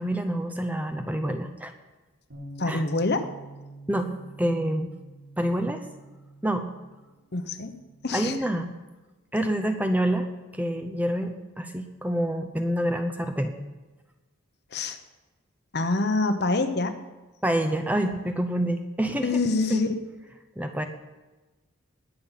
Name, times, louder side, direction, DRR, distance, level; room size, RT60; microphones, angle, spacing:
voice 1, 0.0-1.7 2.7-2.8 3.9-4.1 4.4-4.9 5.4-5.8 6.4-6.7 8.1-8.7 9.3-10.3 10.5-13.5 17.4-19.4 19.7-19.8 20.6-20.8, right 1 dB, 5° right, 7 dB, 0.7 m, -27 dB
Bass guitar, 2.3-8.5, right 2 dB, 75° right, 5.9 m, -47 dB
voice 2, 2.6-3.3 7.3-7.7 8.0-8.4 14.7-15.0 15.7-17.0 19.2-19.9, left 3 dB, 50° left, 8 dB, 1.0 m, -25 dB
20.5 x 8.7 x 5.8 m, 1.2 s
head